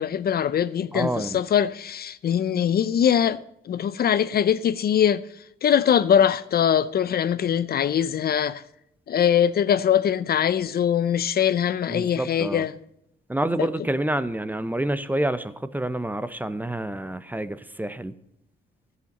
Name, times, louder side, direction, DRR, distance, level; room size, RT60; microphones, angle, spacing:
voice 1, 0.0-5.2 5.6-8.6 9.1-12.7 13.6-13.7, left 9 dB, 50° left, 0.6 m, -22 dB
voice 2, 0.9-1.4 11.9-12.6 13.3-18.1, right 1 dB, 10° right, 0.7 m, -28 dB
13.5 x 8.0 x 5.3 m
cardioid pair, 90°, 20 cm